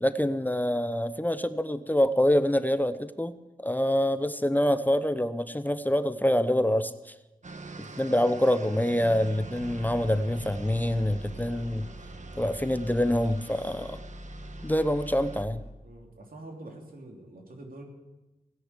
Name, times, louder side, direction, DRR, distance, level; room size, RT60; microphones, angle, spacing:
voice 1, 0.0-7.1 8.0-11.9 12.4-14.0 14.6-15.6, left 1 dB, 10° left, 12 dB, 0.8 m, -26 dB
sound 1, 7.4-15.4, right 3 dB, 55° right, 1.5 m, -45 dB
sound 2, 9.6-15.7, equal, 55° left, 2.7 m, -44 dB
voice 2, 15.8-17.8, right 2 dB, 75° right, 2 dB, 3.1 m, -45 dB
17.0 x 10.0 x 8.2 m, 1.0 s
cardioid pair, 60°, 15 cm